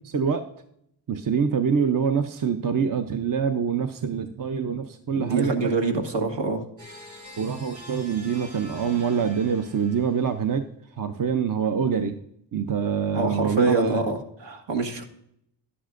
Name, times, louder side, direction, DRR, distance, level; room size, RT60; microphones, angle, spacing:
voice 1, 0.0-0.4 1.1-5.7 7.4-10.7 11.0-12.2 12.5-14.0, right 6 dB, 45° right, 8 dB, 0.7 m, -25 dB
voice 2, 5.2-6.6 13.1-15.0, right 3 dB, 65° right, 3 dB, 1.5 m, -25 dB
sound 1, 6.8-10.5, right 1 dB, 85° right, 3.8 m, -45 dB
11.0 x 10.0 x 2.5 m, 0.74 s
cardioid pair, 55°, 47 cm